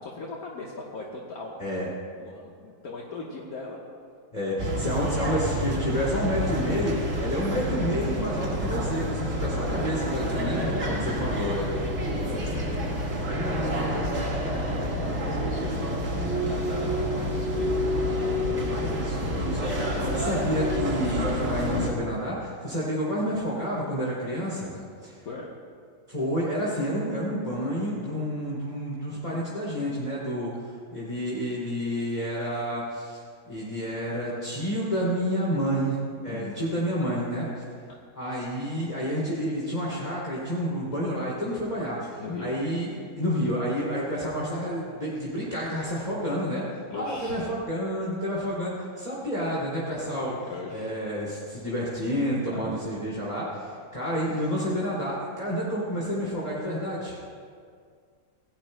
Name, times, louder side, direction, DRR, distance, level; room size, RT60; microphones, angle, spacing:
voice 1, 0.0-1.7 2.2-3.8 10.3-11.4 12.0-18.2 25.2-25.6 36.3-36.6 42.2-42.5 46.9-47.5 50.5-50.9 52.5-52.8, left 3 dB, 65° left, -3 dB, 1.7 m, -39 dB
voice 2, 4.3-11.7 12.1-12.4 18.7-25.2 26.1-33.2 33.5-37.5 38.1-46.6 46.9-50.3 50.7-57.2, equal, 25° left, -7 dB, 2.7 m, -29 dB
sound 1, 4.6-21.9, equal, 45° right, 2.0 m, -28 dB
26.5 x 17.0 x 2.2 m, 2.1 s
omnidirectional pair, 1.7 m